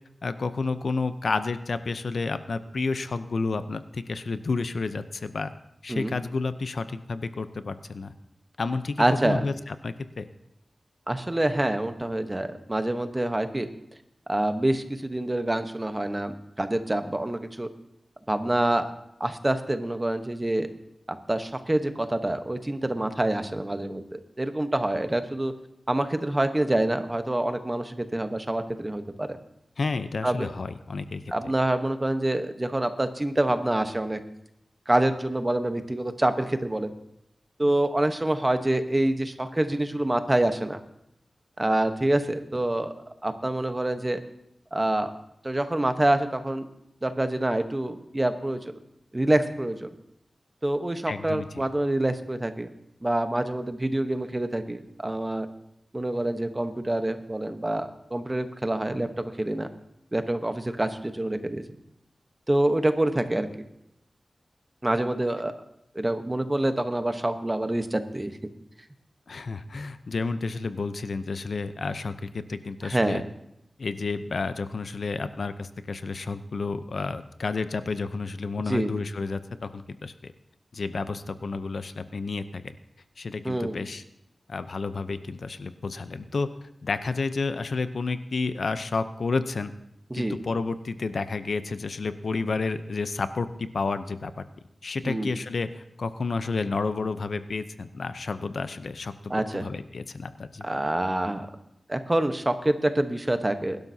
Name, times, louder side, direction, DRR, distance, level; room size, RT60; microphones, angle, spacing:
voice 1, 0.2-5.5 5.8-8.1 8.6-10.3 29.8-31.2 51.1-51.5 69.3-73.2 73.8-80.3 80.7-82.7 83.2-84.0 84.5-86.5 86.8-89.7 90.1-94.4 94.8-100.8, left 4 dB, 75° left, 11 dB, 0.6 m, -30 dB
voice 2, 9.0-9.4 11.1-13.7 14.3-17.7 18.3-18.8 19.2-20.7 21.1-25.5 25.9-29.4 30.2-30.5 31.3-34.2 34.9-36.9 37.6-40.8 41.6-42.9 43.2-44.2 44.7-45.1 45.4-46.7 47.0-48.6 49.1-49.9 50.6-52.7 53.0-55.5 55.9-59.7 60.1-61.8 62.5-63.6 64.8-65.5 65.9-68.4 72.8-73.2 78.7-78.9 83.4-83.8 90.1-90.4 95.0-95.3 99.3-99.7 100.6-101.5 101.9-103.8, right 1 dB, 20° right, 8 dB, 1.0 m, -26 dB
22.0 x 12.0 x 2.8 m, 0.79 s
wide cardioid pair, 90°, 0 cm